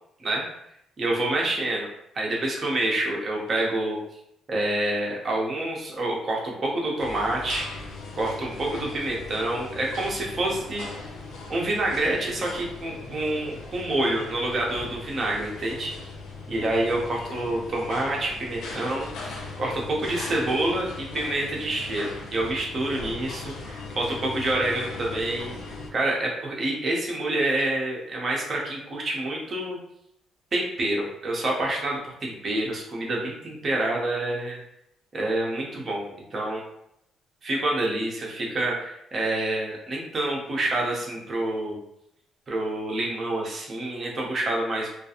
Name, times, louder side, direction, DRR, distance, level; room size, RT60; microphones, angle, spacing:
voice 1, 1.0-1.9 2.1-4.0 4.5-7.6 8.1-10.9 11.5-16.1 16.5-25.6 25.9-29.8 30.5-34.6 35.1-36.6 37.4-41.8 42.5-44.9, right 1 dB, 40° right, -2 dB, 0.8 m, -27 dB
sound 1, 7.0-25.9, left 3 dB, 85° left, 0.6 m, -39 dB
2.4 x 2.1 x 2.8 m, 0.79 s
cardioid pair, 90°, 0 cm